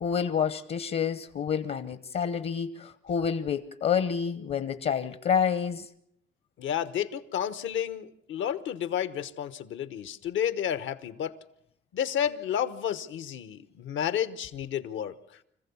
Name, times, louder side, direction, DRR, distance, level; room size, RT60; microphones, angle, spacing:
voice 1, 0.0-5.9, left 7 dB, 55° left, 1.0 m, -28 dB
voice 2, 6.6-11.4 11.9-15.4, left 9 dB, 75° left, 1.1 m, -31 dB
25.5 x 15.0 x 7.1 m
cardioid pair, 90°, 20 cm